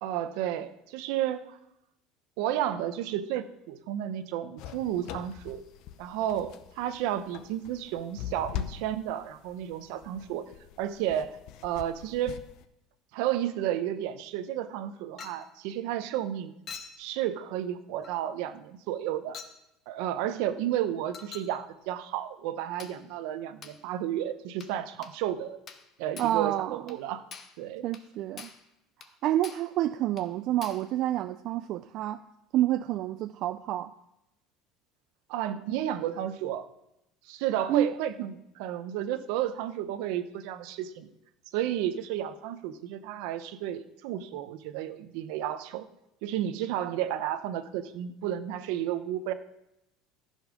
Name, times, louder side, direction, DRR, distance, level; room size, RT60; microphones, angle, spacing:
voice 1, 0.0-1.6 2.4-5.6 6.0-10.5 10.8-11.4 11.6-12.4 13.1-16.5 17.0-19.4 19.9-25.6 26.0-27.2 27.6-27.8 35.3-36.7 37.3-41.1 41.5-45.9 46.2-49.3, right 11 dB, 70° right, 11 dB, 0.9 m, -32 dB
sound 1, 4.6-12.7, left 11 dB, 55° left, 0.7 m, -42 dB
Chink clink, 15.2-15.5 16.7-17.0 18.0-18.2 19.3-19.6 21.1-21.6 22.8-23.0 23.6-23.8 24.6-24.8 25.0-25.2 25.7-25.9 26.2-26.4 26.9-27.0 27.3-27.6 27.9-28.1 28.4-28.7 29.0-29.1 29.4-29.7 30.2-30.3 30.6-30.9, left 6 dB, 30° left, 0.9 m, -45 dB
voice 2, 26.2-27.0 27.8-28.5 29.2-32.2 32.5-33.9 37.7-37.9, right 13 dB, 45° right, 11 dB, 0.3 m, -28 dB
14.5 x 5.4 x 6.2 m, 0.86 s
cardioid pair, 160°, 0 cm